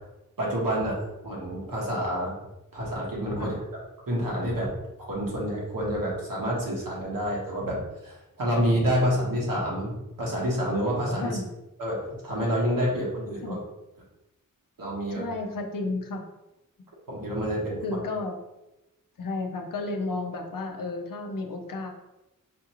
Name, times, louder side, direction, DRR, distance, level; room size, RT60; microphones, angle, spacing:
voice 1, 0.4-1.0 1.2-2.3 2.7-3.6 4.1-4.7 5.0-11.3 11.8-12.0 12.2-13.6 14.8-15.2 17.1-17.8, equal, 80° right, -4 dB, 1.4 m, -28 dB
voice 2, 15.1-16.2 17.8-18.4 19.2-21.9, left 3 dB, 75° left, 3 dB, 0.6 m, -32 dB
5.0 x 2.4 x 2.9 m, 0.96 s
wide cardioid pair, 95°, 33 cm